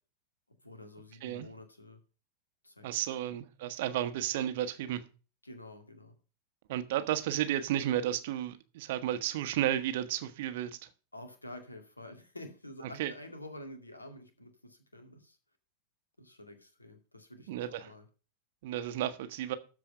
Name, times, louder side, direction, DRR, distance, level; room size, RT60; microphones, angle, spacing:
voice 1, 0.5-2.0 2.6-3.4 5.4-6.2 11.1-15.4 16.2-18.1, left 1 dB, 80° left, 2.2 m, -49 dB
voice 2, 2.8-5.0 6.7-10.8 13.0-13.1 17.5-17.9 18.6-19.5, right 12 dB, 55° right, 1.2 m, -32 dB
13.5 x 4.8 x 6.5 m
figure-of-eight pair, 90°, 0 cm